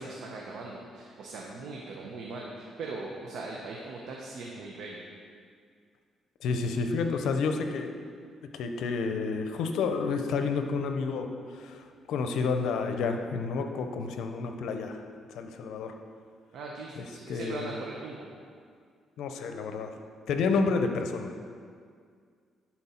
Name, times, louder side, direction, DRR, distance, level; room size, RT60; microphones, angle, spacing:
voice 1, 0.0-5.0 16.5-18.3, right 3 dB, 75° right, -2 dB, 0.8 m, -40 dB
voice 2, 6.4-8.1 8.5-15.0 15.3-15.9 17.0-17.7 19.2-19.9 20.3-21.3, left 4 dB, 80° left, 6 dB, 0.6 m, -30 dB
10.5 x 4.4 x 4.3 m, 2.1 s
cardioid pair, 90°, 0 cm